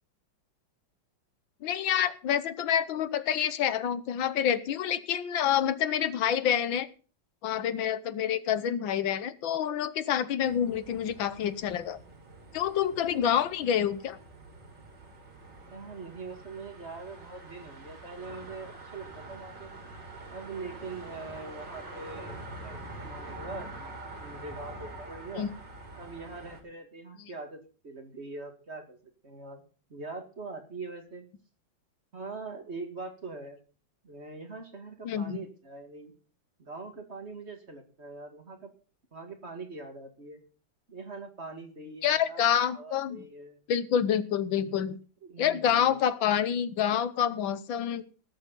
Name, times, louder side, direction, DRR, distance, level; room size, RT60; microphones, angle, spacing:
voice 1, 1.6-6.9 7.4-12.0 12.5-14.2 25.4-25.5 27.2-27.3 35.0-35.4 42.0-43.2 43.7-45.0 45.4-48.0, left 9 dB, 75° left, 13 dB, 1.6 m, -27 dB
sound 1, 10.4-26.6, right 2 dB, 60° right, 3.5 m, -45 dB
voice 2, 15.7-19.7 20.3-25.5 26.0-29.0 29.2-29.6 29.9-31.3 32.1-33.6 34.0-36.1 36.6-38.7 39.1-40.4 40.9-43.6 45.2-46.0, right 3 dB, 35° right, 5 dB, 2.2 m, -43 dB
20.0 x 8.2 x 3.9 m, 0.37 s
omnidirectional pair, 2.2 m